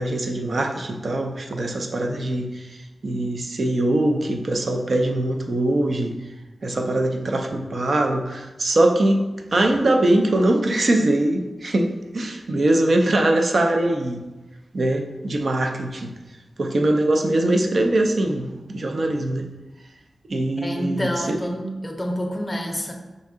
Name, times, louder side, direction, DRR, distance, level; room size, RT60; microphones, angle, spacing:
voice 1, 0.0-2.7 3.0-6.1 6.6-14.2 14.7-16.1 16.6-19.5 20.3-21.4, right 1 dB, 50° right, 4 dB, 0.4 m, -22 dB
voice 2, 20.6-22.9, equal, 20° left, 1 dB, 0.6 m, -27 dB
5.2 x 2.7 x 3.5 m, 1.1 s
wide cardioid pair, 140°, 0 cm